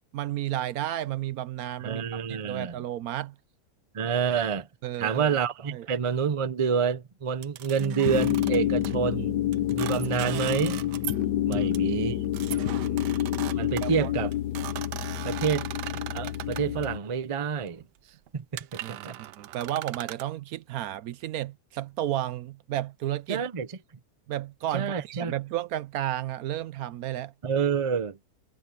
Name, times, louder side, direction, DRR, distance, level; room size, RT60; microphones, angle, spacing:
voice 1, 0.1-3.3 4.8-5.3 5.7-5.9 11.5-11.7 12.5-13.2 13.8-14.1 18.8-23.4 24.3-27.3, right 13 dB, 70° right, 1.0 m, -33 dB
voice 2, 1.8-2.7 3.9-4.7 5.0-9.4 9.7-10.8 11.5-12.2 13.5-14.3 15.2-15.7 16.1-17.8 18.3-19.2 23.3-23.7 24.7-25.3 27.4-28.2, right 6 dB, 40° right, 0.4 m, -28 dB
sound 1, 7.4-9.0 9.5-11.2 11.5-11.8 12.3-16.9 17.6-17.9 18.3-18.4 18.6-20.3, right 14 dB, 85° right, 1.3 m, -39 dB
sound 2, 7.8-17.0, left 12 dB, 85° left, 1.4 m, -28 dB
omnidirectional pair, 1.8 m